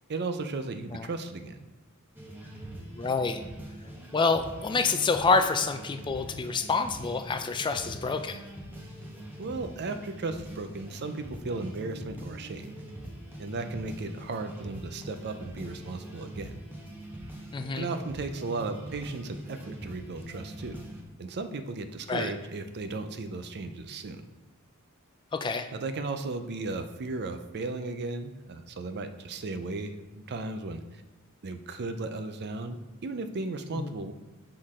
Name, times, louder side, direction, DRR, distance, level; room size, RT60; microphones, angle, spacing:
voice 1, 0.1-1.7 9.4-12.7 13.4-16.6 17.7-20.8 21.2-24.3 25.7-29.9 30.3-31.0 31.4-34.1, right 3 dB, 50° right, 9 dB, 0.5 m, -35 dB
sound 1, 2.1-21.0, right 1 dB, 10° right, 1.0 m, -43 dB
voice 2, 2.9-3.4 4.1-8.4 17.5-17.9 22.1-22.3 25.3-25.7 33.7-33.9, left 4 dB, 20° left, 8 dB, 0.4 m, -27 dB
6.4 x 3.8 x 4.9 m, 1.2 s
head